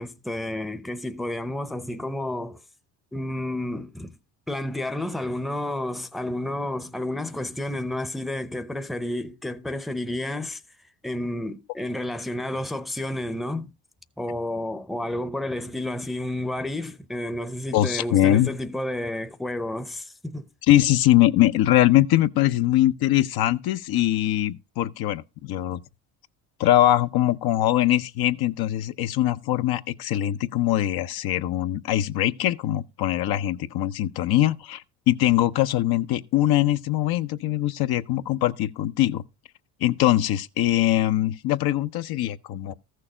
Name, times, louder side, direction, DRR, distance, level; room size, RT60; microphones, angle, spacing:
voice 1, 0.0-2.6 3.1-4.1 4.5-10.6 11.0-13.7 14.2-20.5, left 1 dB, ahead, 0.7 m, -31 dB
voice 2, 17.7-18.5 20.7-25.8 26.6-39.2 39.8-42.7, left 14 dB, 60° left, 0.8 m, -22 dB
14.0 x 6.7 x 5.0 m
cardioid pair, 110°, 41 cm